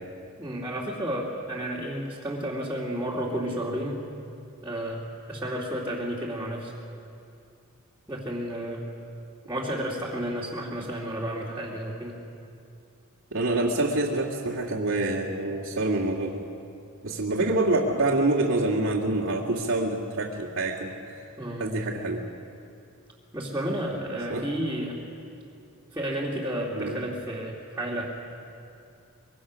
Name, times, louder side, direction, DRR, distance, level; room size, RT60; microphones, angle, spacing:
voice 1, 0.4-4.0 4.6-5.0 5.3-6.7 8.1-8.8 9.5-12.2 21.4-21.7 23.3-25.0 25.9-28.1, right 1 dB, 10° right, -7 dB, 2.4 m, -31 dB
voice 2, 13.3-16.4 17.0-21.2 21.6-22.3 24.3-24.5 26.7-27.0, right 2 dB, 70° right, -4 dB, 2.1 m, -26 dB
24.5 x 23.0 x 6.3 m, 2.6 s
head